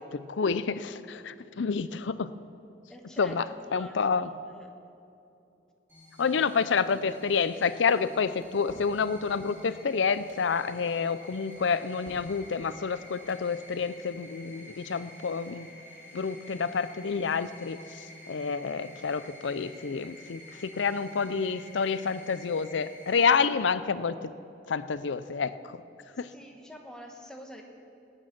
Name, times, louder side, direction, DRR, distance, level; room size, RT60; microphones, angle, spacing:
voice 1, 0.1-2.3 3.2-3.5 3.7-4.3 6.2-15.7 16.1-24.3 24.7-25.8 26.2-26.3, left 5 dB, 85° left, 14 dB, 0.5 m, -29 dB
voice 2, 2.9-4.7 26.3-27.6, equal, 5° left, 1 dB, 1.3 m, -47 dB
sound 1, 5.9-23.2, equal, 10° right, 3.8 m, -50 dB
sound 2, 8.4-9.0 10.1-10.5 11.5-12.4 13.1-13.5, equal, 85° right, 1.8 m, -52 dB
20.0 x 8.9 x 5.9 m, 2.8 s
head